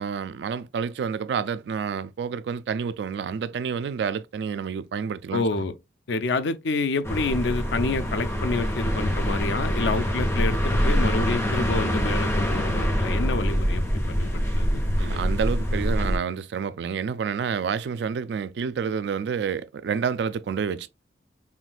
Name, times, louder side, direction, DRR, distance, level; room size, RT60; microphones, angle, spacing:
voice 1, 0.0-5.4 15.0-20.9, right 6 dB, 70° right, 0.3 m, -29 dB
voice 2, 5.3-5.7 6.1-15.2, left 3 dB, 85° left, 0.5 m, -28 dB
sound 1, 7.0-16.2, equal, 15° left, 0.9 m, -25 dB
5.7 x 2.5 x 2.2 m
head